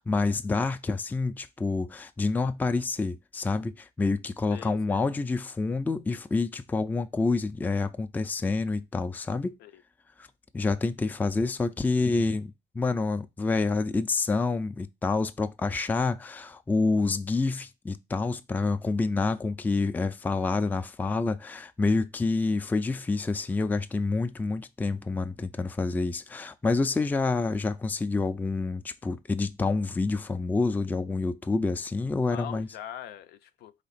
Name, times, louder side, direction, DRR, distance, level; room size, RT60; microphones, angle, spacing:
voice 1, 0.0-9.6 10.5-32.7, left 3 dB, 10° left, 0.3 m, -28 dB
voice 2, 4.5-5.0 9.6-9.8 32.3-33.7, left 10 dB, 75° left, 0.5 m, -42 dB
4.2 x 2.9 x 4.0 m
cardioid pair, 110°, 17 cm